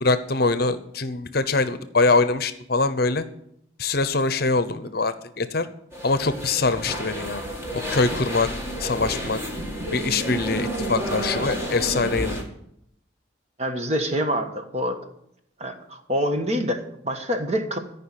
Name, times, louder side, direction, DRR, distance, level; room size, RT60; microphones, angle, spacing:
voice 1, 0.0-3.2 3.8-5.7 6.0-7.4 7.7-8.5 8.8-9.4 9.9-12.4, left 3 dB, 50° left, 12 dB, 0.8 m, -23 dB
sound 1, 5.9-12.4, equal, 15° right, 1.9 m, -30 dB
voice 2, 13.6-15.0 15.6-17.8, equal, 35° right, 5 dB, 1.3 m, -26 dB
14.0 x 5.5 x 9.0 m, 0.74 s
head